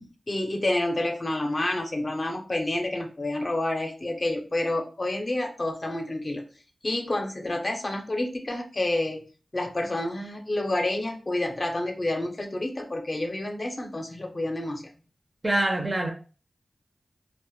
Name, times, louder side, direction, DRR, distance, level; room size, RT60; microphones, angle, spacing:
voice 1, 0.3-6.4 6.8-9.2 9.5-14.9, left 1 dB, 40° left, 0.5 m, -29 dB
voice 2, 15.4-16.1, right 1 dB, 35° right, 0.5 m, -24 dB
2.1 x 2.0 x 3.0 m
wide cardioid pair, 60°, 0 cm